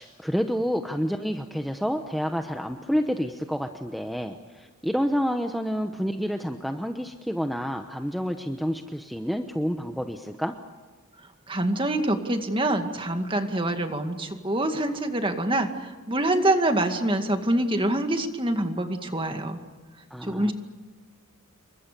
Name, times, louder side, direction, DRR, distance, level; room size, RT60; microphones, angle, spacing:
voice 1, 0.0-10.5 20.1-20.5, equal, ahead, 5 dB, 1.0 m, -29 dB
voice 2, 11.5-19.6 20.2-20.5, right 1 dB, 25° right, 6 dB, 2.2 m, -25 dB
29.5 x 24.0 x 6.9 m, 1.4 s
head